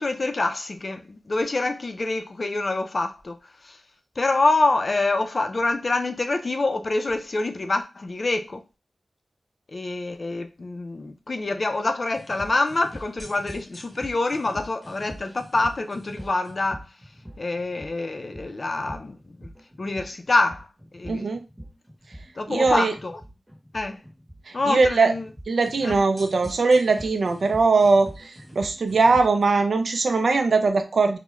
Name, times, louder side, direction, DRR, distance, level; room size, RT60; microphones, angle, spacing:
voice 1, 0.0-3.4 3.6-3.8 4.2-8.6 9.7-16.8 17.4-19.5 19.8-20.7 20.9-21.3 22.4-23.2 23.7-24.0 24.5-25.3 25.8-26.0, left 2 dB, 55° left, 0.4 m, -26 dB
sound 1, 12.1-29.4, equal, 10° right, 1.0 m, -43 dB
voice 2, 21.1-21.4 22.5-23.0 24.5-25.1 25.5-31.2, right 3 dB, 75° right, 0.4 m, -20 dB
2.2 x 2.1 x 3.0 m
cardioid pair, 45°, 0 cm